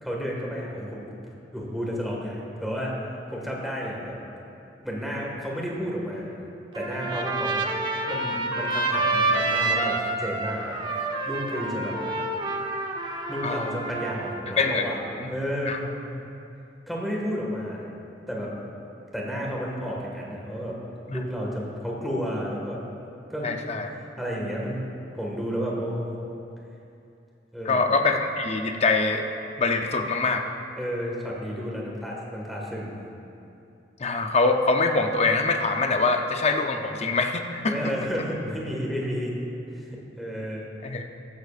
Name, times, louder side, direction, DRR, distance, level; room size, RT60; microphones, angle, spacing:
voice 1, 0.0-1.1 1.5-3.0 3.3-4.2 4.8-6.4 6.7-7.6 8.0-10.7 11.3-12.0 13.3-14.9 15.3-15.8 16.9-17.9 18.3-18.5 19.1-20.8 21.1-22.8 23.3-23.7 24.2-26.2 27.5-27.9 30.8-33.0 37.7-39.3 39.7-39.9 40.2-40.6, equal, ahead, -4 dB, 1.7 m, -31 dB
Trumpet, 6.7-14.4, right 2 dB, 25° right, 0.9 m, -28 dB
voice 2, 23.4-23.9 27.6-29.2 29.6-30.4 34.0-37.7 40.8-41.0, left 3 dB, 35° left, 5 dB, 0.6 m, -24 dB
14.5 x 12.0 x 2.5 m, 2.7 s
head